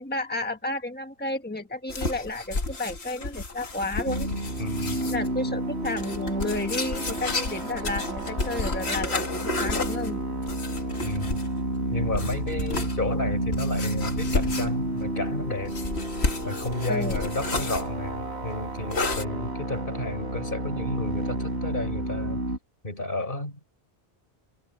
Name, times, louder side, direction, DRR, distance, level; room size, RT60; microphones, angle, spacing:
voice 1, 0.0-4.3 5.0-10.2 12.6-12.7 16.9-17.3, left 2 dB, 10° left, 1.5 m, -32 dB
sound 1, 1.9-5.3 5.8-11.6 12.1-13.0 13.5-15.0 15.6-17.9 18.9-19.2, left 3 dB, 75° left, 2.1 m, -31 dB
sound 2, 4.1-22.6, right 1 dB, 85° right, 4.1 m, -31 dB
voice 2, 4.6-5.0 11.0-11.4 11.9-15.7 16.4-22.4 22.8-23.6, left 2 dB, 55° left, 4.4 m, -32 dB
omnidirectional pair, 1.1 m